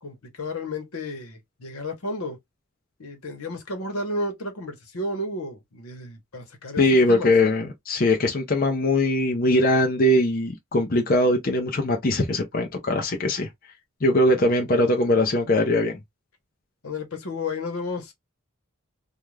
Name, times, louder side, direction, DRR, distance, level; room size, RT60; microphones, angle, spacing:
voice 1, 0.0-2.4 3.0-7.3 16.8-18.1, left 2 dB, 85° left, 1.0 m, -32 dB
voice 2, 6.8-13.5 14.0-15.9, left 1 dB, 40° left, 0.6 m, -21 dB
2.5 x 2.2 x 3.2 m
head